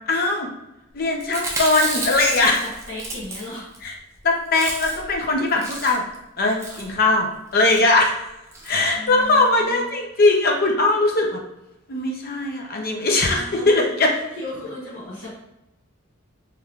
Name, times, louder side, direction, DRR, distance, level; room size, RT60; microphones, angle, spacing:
voice 1, 0.1-0.5 0.9-2.6 3.8-3.9 4.2-6.0 6.4-7.3 7.5-8.1 8.6-11.4 11.9-14.2, left 2 dB, 45° left, 1 dB, 0.6 m, -20 dB
Chewing mastication, 1.2-3.8 4.1-4.2 4.4-5.1 5.5-6.1 6.6-6.9 7.5-7.8 8.5-8.7 9.1-9.2 9.3-9.4, right 2 dB, 15° right, 0.4 m, -31 dB
voice 2, 2.6-3.7 8.9-9.9 13.3-13.7 14.1-15.4, left 1 dB, 70° left, -9 dB, 1.1 m, -35 dB
3.5 x 3.1 x 2.3 m, 0.90 s
head